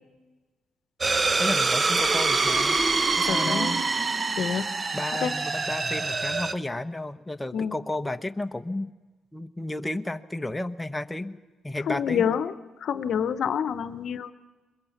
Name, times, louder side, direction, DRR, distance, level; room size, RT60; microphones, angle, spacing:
sound 1, 1.0-6.5, right 3 dB, 30° right, 0.9 m, -25 dB
voice 1, 1.4-2.8 3.2-3.8 4.9-8.9 9.3-11.4 11.6-12.2, left 1 dB, 10° left, 7 dB, 1.0 m, -32 dB
voice 2, 3.2-3.7 4.4-4.7 5.2-5.3 7.5-7.7 11.9-12.5 12.8-14.3, left 8 dB, 65° left, 12 dB, 0.9 m, -27 dB
22.5 x 22.0 x 7.2 m, 1.2 s
cardioid pair, 90°, 0 cm